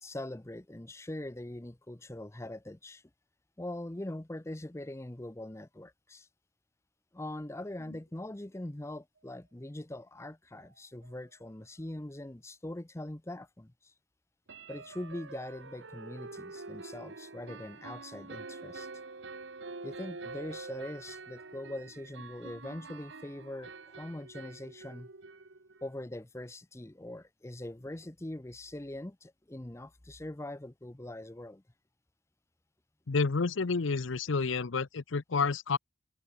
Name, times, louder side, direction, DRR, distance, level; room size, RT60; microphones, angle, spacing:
voice 1, 0.0-3.0 3.6-6.3 7.1-13.9 14.7-18.9 19.8-25.1 25.8-31.6, left 1 dB, 15° left, 0.7 m, -42 dB
sound 1, 10.5-10.6 11.0-11.2 11.5-11.6 14.5-25.9, right 3 dB, 70° right, 1.3 m, -46 dB
voice 2, 33.1-35.8, left 4 dB, 80° left, 0.7 m, -29 dB
head